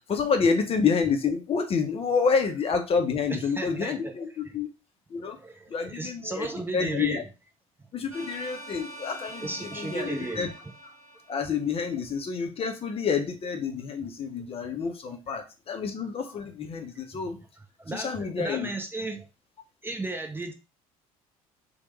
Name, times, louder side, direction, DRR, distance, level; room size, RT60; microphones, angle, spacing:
voice 1, 0.0-4.7 5.1-5.4 5.7-7.2 7.9-10.5 11.3-17.4 17.9-18.7, left 5 dB, 35° left, 6 dB, 0.6 m, -28 dB
voice 2, 3.3-4.1 4.4-4.6 5.1-7.2 7.8-7.9 9.4-10.5 11.9-12.0 17.8-19.3 19.8-20.5, right 2 dB, 10° right, 5 dB, 0.6 m, -35 dB
sound 1, 8.1-12.0, right 1 dB, 85° right, 0.7 m, -44 dB
3.0 x 2.1 x 3.0 m, 0.29 s
figure-of-eight pair, 60°, 18 cm